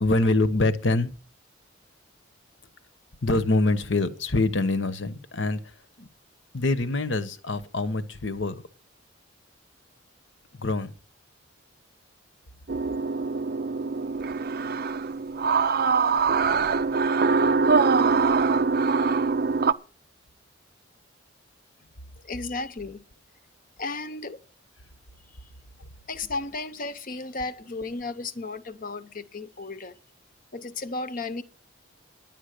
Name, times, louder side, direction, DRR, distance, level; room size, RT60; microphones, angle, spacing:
voice 1, 0.0-1.1 3.2-5.6 6.0-6.1 6.5-8.6 10.5-10.9, left 2 dB, 65° left, 1.1 m, -25 dB
sound 1, 12.7-19.7, right 5 dB, 50° right, 0.5 m, -23 dB
voice 2, 22.2-23.0 23.8-24.4 26.1-30.0 30.5-31.4, left 3 dB, 45° left, 0.8 m, -34 dB
11.0 x 9.1 x 6.6 m
head